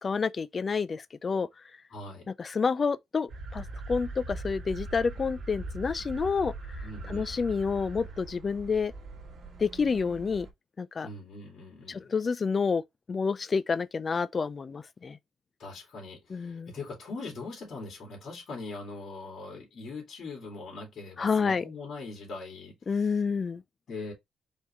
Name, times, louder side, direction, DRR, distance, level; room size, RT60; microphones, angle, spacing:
voice 1, 0.0-1.5 2.4-8.9 9.6-10.5 10.8-11.1 11.9-12.8 13.1-15.2 16.3-16.7 21.2-21.6 22.9-23.6, left 5 dB, 40° left, 0.4 m, -29 dB
voice 2, 1.9-2.3 6.8-7.3 11.0-12.1 15.6-23.2 23.9-24.1, left 3 dB, 60° left, 2.6 m, -41 dB
sound 1, 3.3-10.5, right 2 dB, 55° right, 1.5 m, -41 dB
4.4 x 3.5 x 3.1 m
cardioid pair, 90°, 0 cm